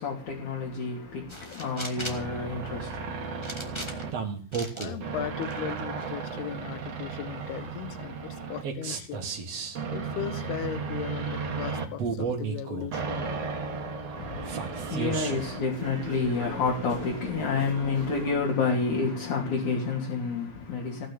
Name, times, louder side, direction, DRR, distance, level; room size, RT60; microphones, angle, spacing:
voice 1, 0.0-3.5 14.1-21.1, left 4 dB, 45° left, 3.9 m, -29 dB
sound 1, 1.3-2.3 3.4-4.2 4.5-4.9 5.4-6.1, equal, 15° left, 1.0 m, -39 dB
sound 2, 1.9-18.3, right 5 dB, 45° right, 2.6 m, -34 dB
voice 2, 4.8-9.3 9.9-13.6, left 10 dB, 75° left, 2.9 m, -37 dB
18.0 x 6.4 x 9.4 m
omnidirectional pair, 5.0 m